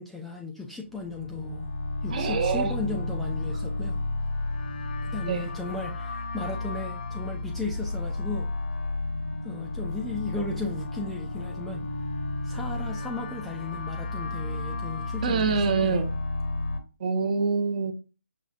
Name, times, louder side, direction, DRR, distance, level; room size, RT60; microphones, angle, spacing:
voice 1, 0.0-1.7 2.0-4.0 5.1-8.5 9.4-11.8 12.4-16.0, left 3 dB, ahead, 0.3 m, -36 dB
sound 1, 0.9-16.8, left 2 dB, 50° left, 0.8 m, -32 dB
voice 2, 2.1-2.7 5.2-5.5 15.2-16.1 17.0-17.9, right 5 dB, 40° right, 0.6 m, -25 dB
5.4 x 3.1 x 2.4 m
figure-of-eight pair, 140°, 7 cm